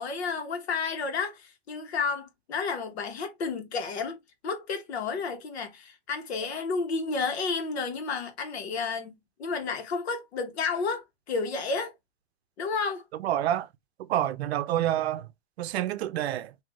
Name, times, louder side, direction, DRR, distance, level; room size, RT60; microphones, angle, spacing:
voice 1, 0.0-4.2 4.4-9.1 9.4-11.9 12.6-13.0, left 4 dB, 75° left, 1.4 m, -31 dB
voice 2, 13.2-13.7 14.1-15.3 15.6-16.5, right 12 dB, 75° right, 0.6 m, -27 dB
3.8 x 2.8 x 3.1 m
supercardioid pair, 180°, 32 cm